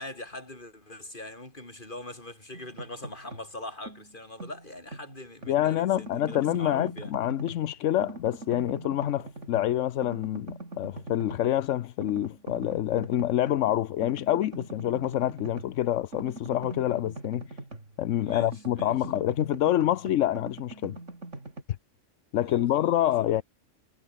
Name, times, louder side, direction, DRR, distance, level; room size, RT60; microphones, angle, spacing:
voice 1, 0.0-7.1 18.2-19.0 22.4-23.1, left 1 dB, 40° left, 5.1 m, -42 dB
sound 1, 2.5-3.5 3.9-5.6 6.0-7.7 8.0-9.8 10.0-11.6 12.0-13.6 14.0-18.0 18.3-21.6, right 2 dB, 75° right, 5.0 m, -42 dB
voice 2, 5.5-17.4 18.0-21.0 22.3-23.4, left 12 dB, 80° left, 1.0 m, -27 dB
omnidirectional pair, 1.3 m